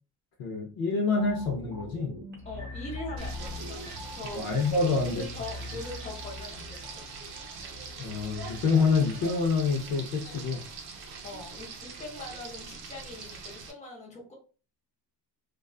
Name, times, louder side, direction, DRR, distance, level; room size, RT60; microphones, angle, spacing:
voice 1, 0.4-2.1 4.3-5.2 8.0-10.6, left 4 dB, 55° left, 2 dB, 0.6 m, -27 dB
sound 1, 1.2-10.5 10.8-11.0, left 1 dB, 25° right, 0.8 m, -43 dB
voice 2, 2.4-4.5 4.8-7.0 11.2-14.3, left 2 dB, 15° left, -2 dB, 0.7 m, -42 dB
Frying (food), 3.2-13.7, right 4 dB, 55° right, 0.6 m, -43 dB
2.3 x 2.3 x 2.3 m, 0.35 s
cardioid pair, 155°, 44 cm